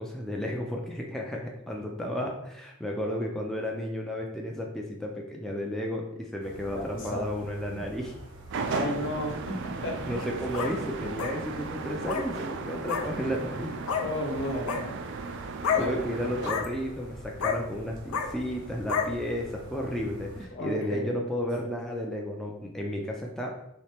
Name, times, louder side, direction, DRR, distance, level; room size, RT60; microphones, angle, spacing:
voice 1, 0.0-8.1 10.1-13.7 15.4-15.5 15.8-23.6, equal, ahead, -1 dB, 0.4 m, -33 dB
sound 1, 6.4-20.5, right 2 dB, 80° right, 1.0 m, -47 dB
voice 2, 6.7-7.3 7.7-7.8 8.7-10.4 14.0-15.0 15.7-16.1 20.5-21.1, left 1 dB, 60° left, 0 dB, 1.0 m, -34 dB
sound 2, 8.5-16.5, right 4 dB, 60° right, 0.4 m, -36 dB
sound 3, 10.1-10.7 11.2-11.3 12.0-12.3 12.9-13.0 13.9-14.0 14.5-14.8 15.6-15.8 16.4-16.7 17.4-17.6 18.1-18.3 18.9-19.1, left 6 dB, 80° left, 0.5 m, -28 dB
4.2 x 3.2 x 3.3 m, 0.81 s
head